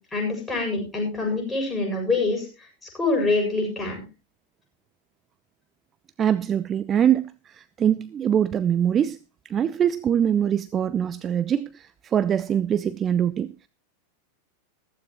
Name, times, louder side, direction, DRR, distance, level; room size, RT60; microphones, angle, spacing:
voice 1, 0.1-2.5 2.9-4.0, left 3 dB, 10° left, 0 dB, 7.6 m, -25 dB
voice 2, 6.2-9.2 9.4-13.7, right 9 dB, 25° right, 14 dB, 0.6 m, -23 dB
15.0 x 14.5 x 3.0 m, 0.31 s
figure-of-eight pair, 90°, 0 cm